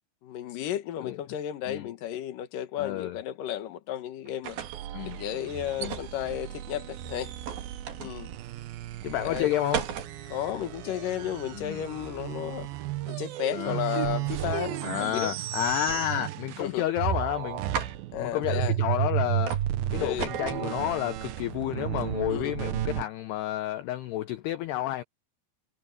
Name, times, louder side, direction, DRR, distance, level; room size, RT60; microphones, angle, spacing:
voice 1, 0.2-4.6 5.0-7.3 8.0-8.3 9.2-9.5 10.3-12.7 13.1-15.3 16.6-16.8 18.1-18.8 20.0-20.3 22.3-22.5, left 11 dB, 65° left, 2.3 m, -33 dB
voice 2, 2.8-3.2 4.9-5.2 5.8-6.0 8.0-8.1 9.0-9.8 11.5-11.8 13.5-13.8 14.8-17.9 18.2-19.6 19.9-25.0, left 13 dB, 90° left, 2.3 m, -30 dB
sound 1, 4.2-4.9 5.7-6.1 7.4-8.2 9.3-10.1 15.7-16.3 16.6-17.1 17.6-17.9 19.5-19.7 20.2-20.7, right 7 dB, 55° right, 3.9 m, -35 dB
sound 2, 4.4-16.7 17.0-23.0, right 12 dB, 80° right, 2.1 m, -33 dB
omnidirectional pair, 5.8 m